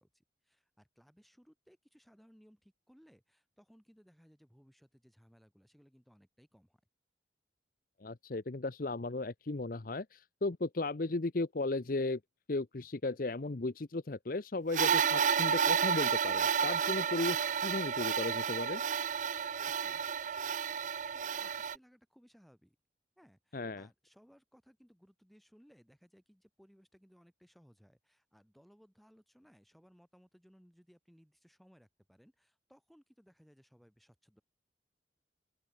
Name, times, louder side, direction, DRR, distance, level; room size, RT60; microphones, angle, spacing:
voice 1, 0.0-6.8 19.6-22.8 23.2-34.4, equal, ahead, 6.8 m, -64 dB
voice 2, 8.0-12.2 12.5-18.8 23.5-23.9, left 2 dB, 50° left, 0.7 m, -35 dB
sound 1, 14.7-21.8, right 7 dB, 40° right, 0.4 m, -31 dB
open air
head